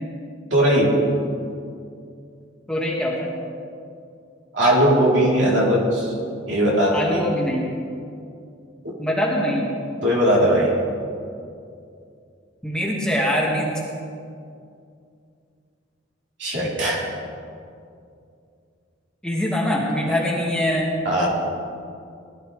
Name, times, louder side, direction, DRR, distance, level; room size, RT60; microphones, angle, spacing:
voice 1, 0.5-0.9 4.5-6.1 6.5-7.3 8.8-8.9 10.0-10.7 16.4-17.0 21.1-21.3, equal, 70° right, -5 dB, 3.6 m, -19 dB
voice 2, 2.7-3.3 6.9-7.7 9.0-9.7 12.6-13.7 19.2-20.9, equal, 5° left, -4 dB, 1.8 m, -23 dB
20.0 x 12.0 x 3.3 m, 2.4 s
head